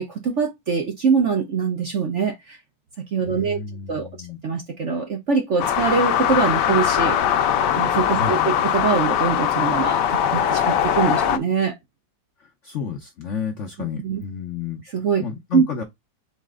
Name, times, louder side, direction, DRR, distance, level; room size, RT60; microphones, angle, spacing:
voice 1, 0.0-2.6 3.1-3.6 3.9-4.1 4.4-7.2 7.7-11.8 13.8-14.2 14.9-15.3 15.5-15.7, right 5 dB, 55° right, 0.9 m, -23 dB
voice 2, 3.3-4.4 8.2-8.6 12.6-14.8 15.2-15.8, left 6 dB, 55° left, 0.8 m, -31 dB
sound 1, 5.6-11.4, left 9 dB, 70° left, 1.2 m, -21 dB
4.2 x 3.0 x 3.6 m
omnidirectional pair, 2.0 m